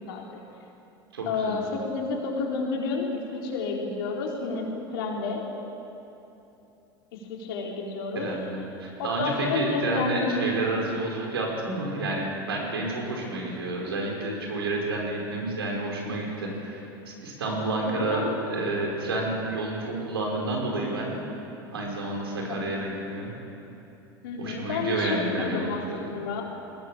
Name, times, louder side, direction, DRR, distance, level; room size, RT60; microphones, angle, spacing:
voice 1, 0.1-0.4 1.3-5.5 7.1-8.3 9.0-10.7 17.8-18.3 22.4-22.6 24.2-26.4, left 4 dB, 70° left, -1 dB, 4.0 m, -30 dB
voice 2, 1.1-1.6 8.1-21.1 21.7-23.3 24.4-26.0, right 2 dB, 85° right, -1 dB, 5.0 m, -30 dB
21.0 x 17.5 x 7.4 m, 2.9 s
hypercardioid pair, 80°, 13 cm